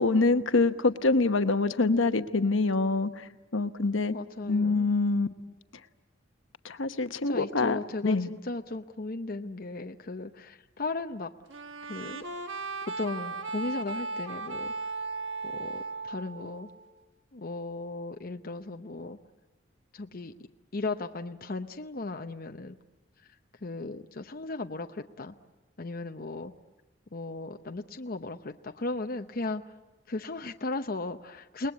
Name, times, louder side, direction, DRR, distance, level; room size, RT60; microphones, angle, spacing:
voice 1, 0.0-4.1 4.5-5.3 6.6-8.3, left 3 dB, 80° left, 10 dB, 1.0 m, -25 dB
voice 2, 4.1-4.9 7.2-11.3 11.9-12.2 13.0-14.7 15.4-16.7 17.3-19.2 19.9-20.3 20.7-22.7 23.6-25.3 25.8-26.5 27.1-29.6 30.1-31.7, left 3 dB, 45° left, 6 dB, 0.8 m, -36 dB
sound 1, 11.5-17.0, right 3 dB, 70° right, 1.5 m, -37 dB
29.5 x 20.0 x 8.4 m, 1.1 s
head